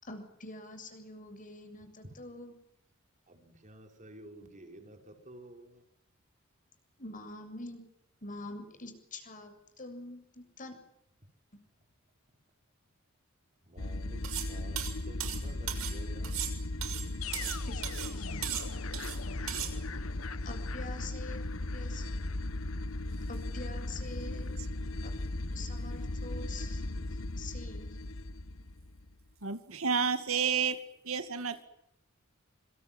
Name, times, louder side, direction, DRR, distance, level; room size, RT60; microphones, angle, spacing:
voice 1, 0.0-2.6 7.0-7.8 8.2-10.7 11.5-11.6 17.7-18.5 20.5-21.5 21.7-22.0 23.3-24.6 25.0-25.1 25.5-26.8 27.3-28.0, left 2 dB, 40° left, 7 dB, 7.5 m, -45 dB
voice 2, 3.3-5.7 13.7-14.2 14.5-14.8 15.1-16.4, right 1 dB, 35° right, 4 dB, 5.5 m, -51 dB
Science fiction texture, 13.8-29.1, left 2 dB, 70° left, 1.3 m, -37 dB
sound 1, 14.2-14.5 14.8-16.0 16.2-17.6 17.8-18.1 18.4-19.2 19.5-19.7, right 11 dB, 85° right, 6.6 m, -37 dB
voice 3, 29.4-30.8 31.0-31.7, right 6 dB, 70° right, 9 dB, 2.3 m, -30 dB
26.5 x 26.5 x 7.6 m, 0.80 s
head